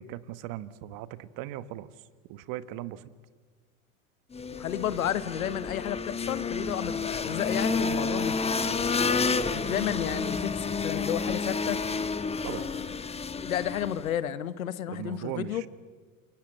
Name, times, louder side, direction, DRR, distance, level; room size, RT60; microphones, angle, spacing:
voice 1, 0.0-1.9 2.3-3.1 12.4-12.7 14.9-15.7, right 13 dB, 55° right, 1.3 m, -38 dB
sound 1, 4.3-14.1, left 4 dB, 15° left, 1.2 m, -30 dB
voice 2, 4.5-9.2 9.5-11.8 12.5-13.0 13.3-15.6, left 10 dB, 85° left, 1.2 m, -32 dB
28.0 x 22.5 x 7.7 m
hypercardioid pair, 90°, 41 cm